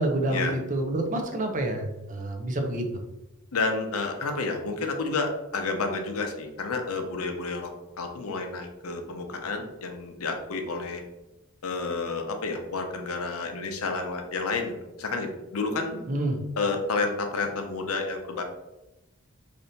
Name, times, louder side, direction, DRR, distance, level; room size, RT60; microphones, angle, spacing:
voice 1, 0.0-2.8 16.1-16.4, right 1 dB, 35° right, 3 dB, 0.6 m, -28 dB
voice 2, 3.5-7.7 8.0-11.0 11.6-16.0 16.6-18.4, left 3 dB, 70° left, 4 dB, 0.6 m, -30 dB
3.3 x 2.7 x 4.0 m, 0.99 s
head